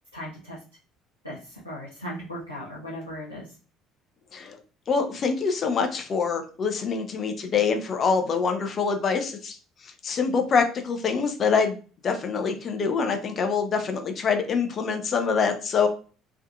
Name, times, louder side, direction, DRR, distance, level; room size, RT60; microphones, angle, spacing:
voice 1, 0.1-0.6 1.2-3.5, equal, 90° left, -7 dB, 0.7 m, -37 dB
voice 2, 4.9-9.6 10.0-11.8 12.0-15.9, left 5 dB, 40° left, 6 dB, 0.7 m, -25 dB
3.6 x 2.7 x 2.3 m, 0.37 s
figure-of-eight pair, 55°, 0 cm